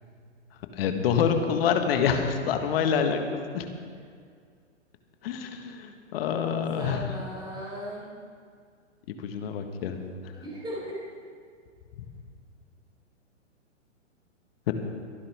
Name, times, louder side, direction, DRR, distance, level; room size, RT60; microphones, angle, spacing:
voice 1, 0.7-3.2 3.5-3.7 5.2-7.0 9.2-10.0 12.0-12.1 14.7-14.8, left 7 dB, 50° left, 6 dB, 1.6 m, -26 dB
voice 2, 6.4-8.1 10.3-11.0, equal, 10° right, -5 dB, 4.6 m, -37 dB
24.0 x 10.5 x 3.6 m, 2.1 s
hypercardioid pair, 120°, 37 cm